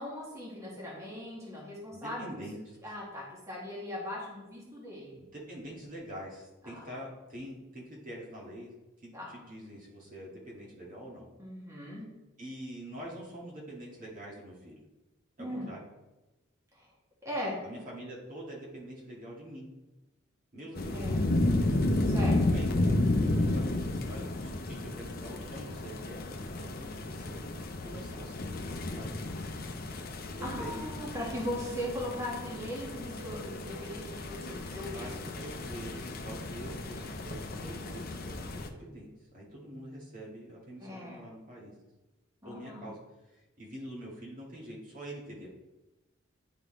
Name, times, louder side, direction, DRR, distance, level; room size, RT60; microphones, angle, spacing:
voice 1, 0.0-2.3 2.8-5.2 6.6-6.9 9.1-9.3 11.4-12.1 15.4-15.7 16.7-16.9 17.2-17.6 20.9-21.5 22.0-22.4 30.4-35.0 40.8-41.2 42.4-42.9, left 1 dB, 15° right, -5 dB, 1.6 m, -39 dB
voice 2, 1.9-2.8 5.2-8.7 9.0-11.3 12.4-14.8 15.4-15.8 17.6-19.7 20.5-21.4 22.5-22.9 23.1-27.4 27.8-29.1 30.4-30.8 34.9-41.7 42.4-43.0 43.3-45.5, right 1 dB, 45° right, -4 dB, 1.8 m, -45 dB
sound 1, 20.8-38.7, left 2 dB, 50° left, 0.6 m, -32 dB
10.0 x 4.0 x 3.8 m, 1.0 s
head